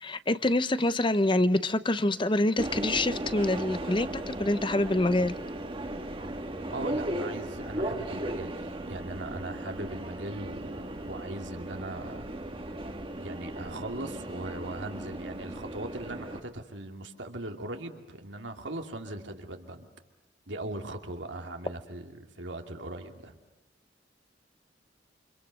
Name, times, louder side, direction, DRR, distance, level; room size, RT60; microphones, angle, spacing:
voice 1, 0.0-5.4, left 1 dB, 25° left, 0.8 m, -26 dB
Subway metro underground, 2.6-16.4, right 1 dB, 30° right, 1.7 m, -36 dB
voice 2, 6.7-12.3 13.2-19.9 20.5-23.4, right 2 dB, 75° right, 2.7 m, -39 dB
29.0 x 26.5 x 6.5 m
head